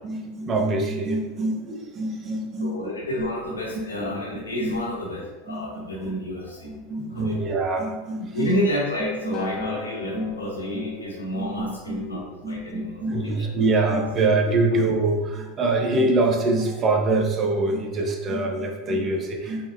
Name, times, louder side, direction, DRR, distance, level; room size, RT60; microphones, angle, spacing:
voice 1, 0.0-3.6 4.0-4.1 4.6-5.0 5.5-6.1 6.6-8.5 9.0-9.7 10.1-10.9 11.3-19.7, right 2 dB, 35° right, 2 dB, 0.8 m, -25 dB
voice 2, 2.6-6.7 7.1-7.3 8.2-13.5, equal, 90° left, -3 dB, 1.1 m, -30 dB
Acoustic guitar, 9.3-13.6 14.5-14.6, left 8 dB, 35° left, 1.0 m, -41 dB
4.4 x 3.6 x 2.7 m, 1.2 s
hypercardioid pair, 85°, 0 cm